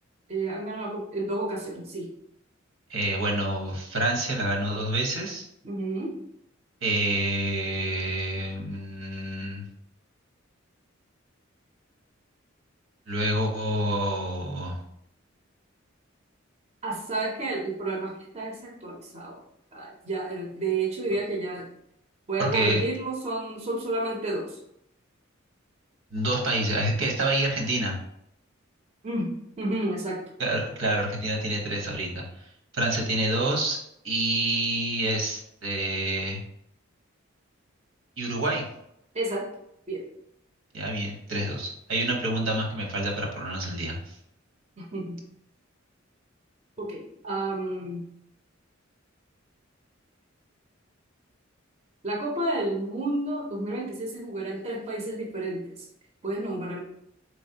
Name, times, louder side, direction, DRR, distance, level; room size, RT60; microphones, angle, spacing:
voice 1, 0.3-2.1 5.6-6.2 16.8-19.4 19.7-21.7 22.3-24.6 29.0-30.3 39.1-39.5 39.9-40.0 44.8-45.2 46.8-48.0 52.0-55.9 56.2-56.8, right 2 dB, 35° right, -1 dB, 0.6 m, -31 dB
voice 2, 2.9-5.5 6.8-9.6 13.1-14.8 22.4-22.8 26.1-28.0 30.4-32.5 32.7-33.8 34.0-36.4 38.2-38.6 40.7-44.2, right 1 dB, 80° right, 0 dB, 1.1 m, -27 dB
4.0 x 3.2 x 2.8 m, 0.75 s
head